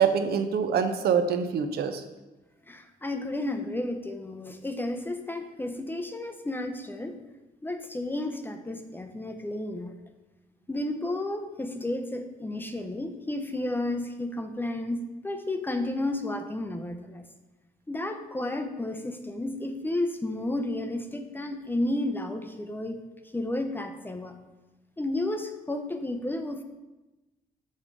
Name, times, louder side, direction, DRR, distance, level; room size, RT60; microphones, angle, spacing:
voice 1, 0.0-2.0, right 7 dB, 70° right, 8 dB, 0.6 m, -25 dB
voice 2, 2.7-7.2 7.6-9.9 10.7-17.3 17.9-23.0 23.3-24.4 25.0-26.6, left 1 dB, 10° left, 6 dB, 0.5 m, -32 dB
6.5 x 3.7 x 5.1 m, 1.1 s
cardioid pair, 125°, 17 cm